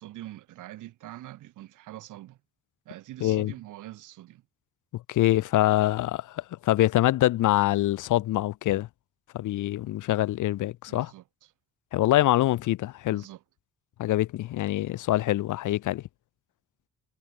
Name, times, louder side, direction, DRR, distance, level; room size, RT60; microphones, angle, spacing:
voice 1, 0.0-2.4 2.9-4.4 10.9-11.5 13.1-13.4, right 15 dB, 85° right, 4.1 m, -44 dB
voice 2, 3.2-3.5 4.9-8.9 9.3-11.1 11.9-13.2 14.0-16.0, left 15 dB, 80° left, 1.4 m, -25 dB
cardioid pair, 90°, 30 cm